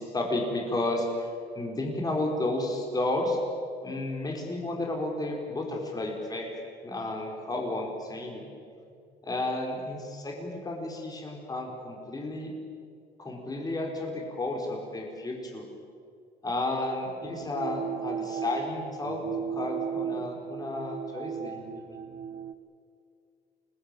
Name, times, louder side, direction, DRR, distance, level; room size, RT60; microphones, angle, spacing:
voice 1, 0.0-3.4 3.8-6.5 6.8-8.5 9.2-12.5 13.2-15.6 16.4-19.2 19.5-21.9, left 2 dB, 20° left, 1 dB, 4.6 m, -32 dB
sound 1, 17.2-22.5, right 8 dB, 60° right, 1.2 m, -36 dB
24.5 x 20.5 x 9.0 m, 2.3 s
cardioid pair, 110°, 17 cm